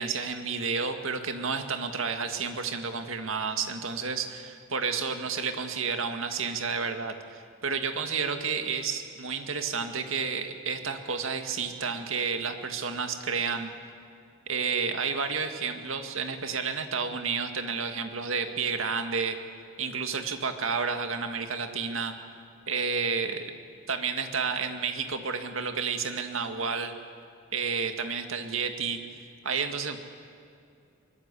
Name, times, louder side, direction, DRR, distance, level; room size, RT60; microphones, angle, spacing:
voice 1, 0.0-13.7 14.5-19.4 19.8-22.2 22.7-23.5 23.9-26.9 27.5-29.0 29.4-30.0, right 5 dB, 85° right, 6 dB, 2.0 m, -31 dB
23.5 x 22.0 x 8.4 m, 2.4 s
head